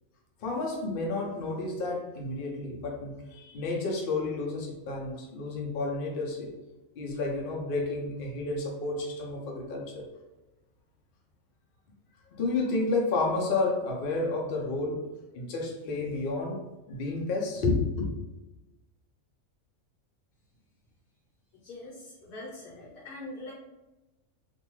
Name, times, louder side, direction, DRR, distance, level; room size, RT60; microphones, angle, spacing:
voice 1, 0.4-6.5 7.0-10.1 12.3-15.1 15.3-18.1, left 3 dB, 60° left, 0.6 m, -31 dB
voice 2, 21.6-23.5, left 2 dB, 75° left, 1.1 m, -43 dB
2.5 x 2.2 x 3.0 m
omnidirectional pair, 1.5 m